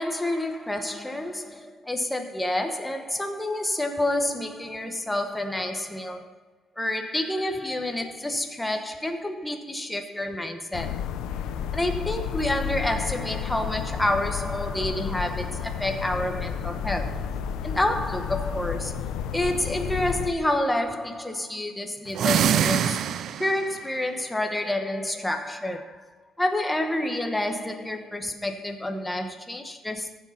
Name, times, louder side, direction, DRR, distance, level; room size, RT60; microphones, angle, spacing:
voice 1, 0.0-6.3 6.8-11.0 11.7-17.3 17.6-23.0 23.4-26.1 26.4-30.1, left 1 dB, 5° left, 1.1 m, -28 dB
sound 1, 10.7-20.3, left 8 dB, 75° left, 0.9 m, -31 dB
sound 2, 22.1-23.7, right 9 dB, 55° right, 0.5 m, -24 dB
14.5 x 7.6 x 5.7 m
cardioid pair, 125°, 0 cm